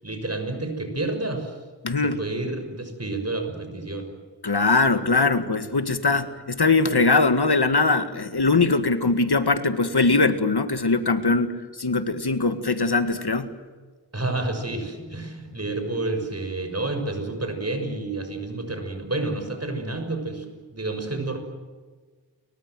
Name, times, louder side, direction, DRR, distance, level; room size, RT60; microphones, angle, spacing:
voice 1, 0.0-1.6 2.0-4.1 14.1-20.4 20.7-21.4, right 2 dB, 35° right, 6 dB, 6.5 m, -29 dB
voice 2, 1.8-2.2 4.4-13.5, left 3 dB, 65° left, 10 dB, 1.9 m, -21 dB
30.0 x 24.0 x 7.7 m, 1.4 s
wide cardioid pair, 70°, 43 cm